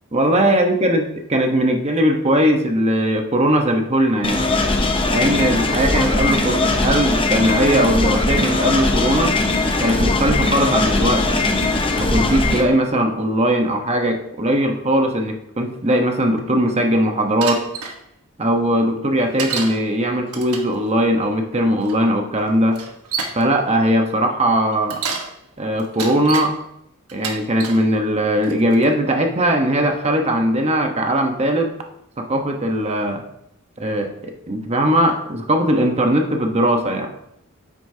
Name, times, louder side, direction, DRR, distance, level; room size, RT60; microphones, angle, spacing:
voice 1, 0.1-1.0 1.3-4.4 5.1-9.4 9.8-11.6 12.0-17.6 18.4-22.8 23.3-25.0 25.6-26.5 27.1-31.7 32.2-33.2 33.8-37.1, right 1 dB, 30° right, 4 dB, 1.0 m, -19 dB
sound 1, 4.2-12.6, left 2 dB, 25° left, 0.9 m, -20 dB
Bicycle, 17.4-18.0 19.4-19.8 20.3-20.7 21.8-21.9 22.7-23.4 24.7-25.3 25.8-26.5 27.1-27.8 28.4-28.8, right 5 dB, 85° right, 1.2 m, -28 dB
9.3 x 8.2 x 2.8 m, 0.78 s
head